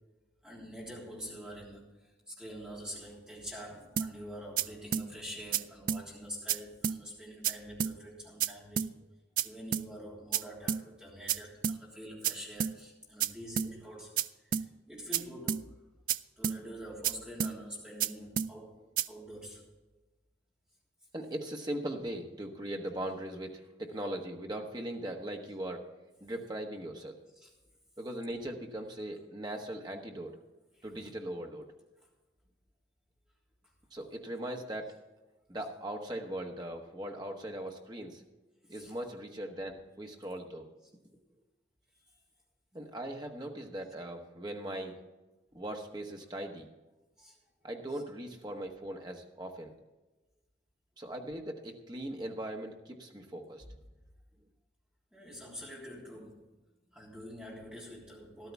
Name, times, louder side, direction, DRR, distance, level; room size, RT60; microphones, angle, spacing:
voice 1, 0.4-8.9 9.4-15.8 16.4-18.8 19.1-19.6 27.3-27.5 30.7-31.1 38.7-38.9 47.2-47.4 53.6-53.7 55.1-56.5 56.9-58.5, equal, 5° right, -5 dB, 3.4 m, -46 dB
sound 1, 4.0-4.1 4.6-4.7 4.9-5.1 5.5-5.6 5.9-6.0 6.5-6.6 6.8-7.0 7.4-7.5 7.8-7.9 8.4-8.5 8.8-8.9 9.4-9.5 9.7-9.9 10.3-10.4 10.7-10.8 11.3-11.4 11.6-11.8 12.2-12.3 12.6-12.7 13.2-13.3 13.6-13.7 14.2-14.3 14.5-14.7 15.1-15.2 15.5-15.6 16.1-16.2 16.4-16.6 17.0-17.1 17.4-17.5 18.0-18.1 18.4-18.5 19.0-19.1, right 8 dB, 45° right, 0.3 m, -30 dB
voice 2, 21.1-25.9 26.2-27.2 28.0-30.3 30.8-31.6 33.9-34.9 35.5-38.2 38.7-40.7 42.7-45.0 45.5-46.7 47.6-49.7 51.0-53.6, right 1 dB, 25° right, 2 dB, 1.3 m, -39 dB
13.5 x 12.5 x 3.5 m, 1.1 s
head